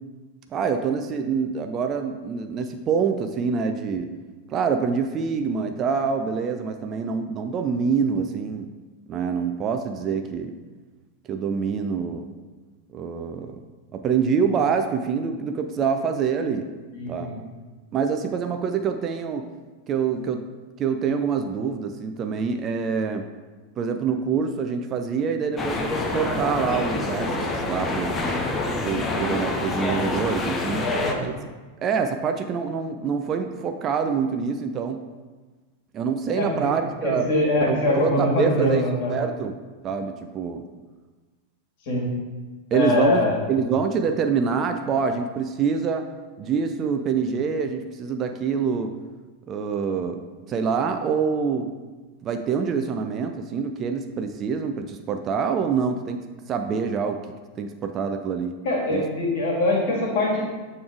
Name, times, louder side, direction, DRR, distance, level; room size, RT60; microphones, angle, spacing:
voice 1, 0.5-4.1 4.5-8.7 9.1-10.5 11.3-12.3 12.9-13.6 13.9-16.7 17.1-17.3 17.9-19.5 19.9-20.4 20.8-23.3 23.8-28.2 28.8-30.9 31.2-31.3 31.8-35.0 35.9-37.3 37.7-39.6 39.8-40.6 42.7-46.0 46.4-48.9 49.5-50.2 50.5-51.7 52.2-57.2 57.6-58.6 58.9-59.1, right 6 dB, 30° right, 6 dB, 0.4 m, -26 dB
voice 2, 16.9-17.3 30.8-31.2 36.4-36.5 37.0-39.1 41.9-42.0 42.7-43.4 58.6-60.4, left 2 dB, 50° left, -3 dB, 1.9 m, -23 dB
sound 1, 25.6-31.1, left 2 dB, 20° left, 0.7 m, -27 dB
7.0 x 3.2 x 4.6 m, 1.3 s
figure-of-eight pair, 90°, 0 cm